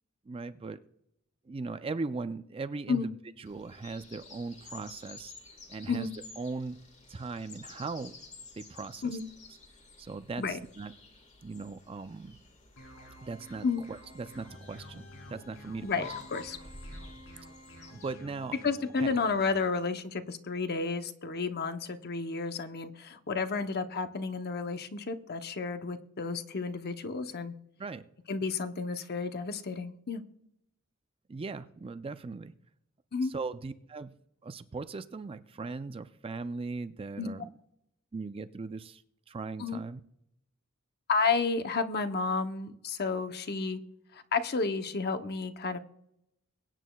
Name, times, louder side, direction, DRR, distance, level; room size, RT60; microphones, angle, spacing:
voice 1, 0.3-0.8 1.5-5.3 5.7-6.1 6.4-6.8 7.1-8.1 8.6-9.2 10.0-10.9 11.4-12.4 13.2-16.1 17.9-18.6 19.0-19.1 27.8-28.1 31.3-32.5 33.3-34.1 34.4-37.5 38.1-39.0 39.3-40.0, right 3 dB, 25° right, 11 dB, 0.4 m, -39 dB
sound 1, 3.4-18.1, left 4 dB, 35° left, 1.7 m, -51 dB
sound 2, 12.8-19.6, equal, 75° left, 3.4 m, -51 dB
voice 2, 15.8-16.6 18.6-27.5 28.3-30.2 33.1-33.3 37.2-37.3 39.6-39.8 41.1-43.8 44.1-45.8, left 4 dB, 50° left, 8 dB, 0.8 m, -31 dB
23.0 x 9.1 x 2.3 m, 0.80 s
head